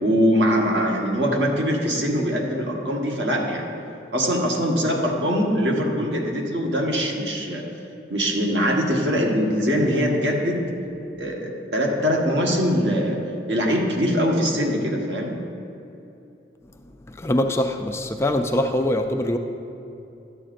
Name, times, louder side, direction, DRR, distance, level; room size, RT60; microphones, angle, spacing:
voice 1, 0.0-3.6 4.1-7.6 8.1-10.6 11.2-13.2 13.5-15.4, equal, 80° right, -1 dB, 1.3 m, -22 dB
voice 2, 17.1-19.4, left 1 dB, 15° left, 5 dB, 0.3 m, -23 dB
12.0 x 8.6 x 2.5 m, 2.8 s
head